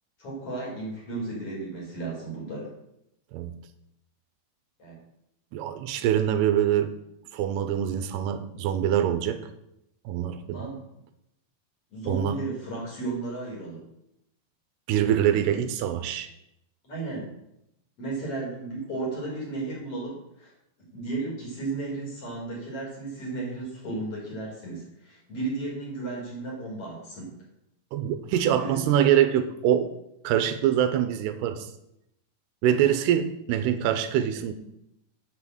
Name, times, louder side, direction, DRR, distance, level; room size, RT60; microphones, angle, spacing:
voice 1, 0.2-2.7 4.8-5.0 10.5-10.8 11.9-13.8 16.8-17.3 18.0-20.5 20.9-27.4 28.6-28.9, right 3 dB, 35° left, -4 dB, 4.6 m, -34 dB
voice 2, 5.5-6.9 7.3-9.4 10.1-10.7 12.1-12.4 14.9-16.3 27.9-29.9 30.2-31.7 32.6-34.5, right 10 dB, 85° right, 10 dB, 2.6 m, -24 dB
8.8 x 6.0 x 7.7 m, 0.80 s
omnidirectional pair, 4.9 m